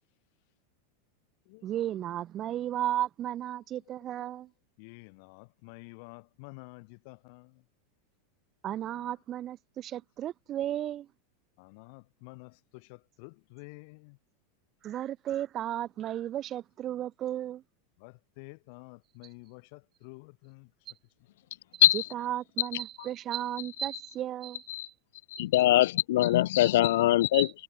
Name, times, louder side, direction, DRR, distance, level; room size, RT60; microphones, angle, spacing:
voice 1, 1.6-4.5 8.6-11.1 14.8-17.6 21.7-24.9 27.3-27.5, right 12 dB, 20° right, 1.6 m, -34 dB
voice 2, 4.8-7.4 11.6-12.5 13.2-14.1 18.0-20.6, left 31 dB, 40° left, 2.4 m, -49 dB
voice 3, 25.3-27.5, left 15 dB, 65° left, 0.6 m, -22 dB
supercardioid pair, 175°, 0 cm